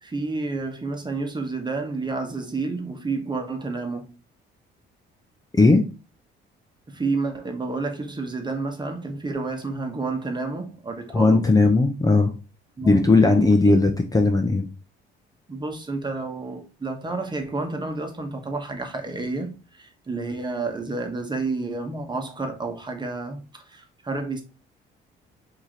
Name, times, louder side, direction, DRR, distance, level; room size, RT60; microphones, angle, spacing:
voice 1, 0.0-4.1 6.9-11.5 12.8-13.8 15.5-24.4, right 3 dB, 20° right, 1.2 m, -30 dB
voice 2, 5.5-5.9 11.1-12.3 12.8-14.7, left 3 dB, 15° left, 0.7 m, -17 dB
4.8 x 2.9 x 3.7 m
cardioid pair, 90°, 21 cm